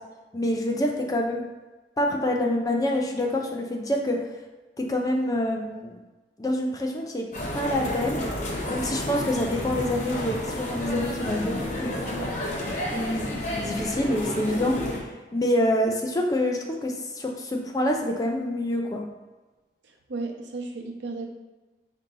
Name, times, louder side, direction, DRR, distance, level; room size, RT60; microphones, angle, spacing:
voice 1, 0.3-1.4 2.0-4.2 4.8-6.0 6.4-7.3 7.5-8.3 8.7-11.9 12.8-14.8 15.3-19.1, left 1 dB, 20° left, 2 dB, 0.4 m, -26 dB
sound 1, 7.3-15.0, left 1 dB, 45° left, 0.8 m, -31 dB
voice 2, 11.7-12.3 19.8-21.3, right 3 dB, 90° right, 2 dB, 0.7 m, -35 dB
5.0 x 2.7 x 3.8 m, 1.2 s
head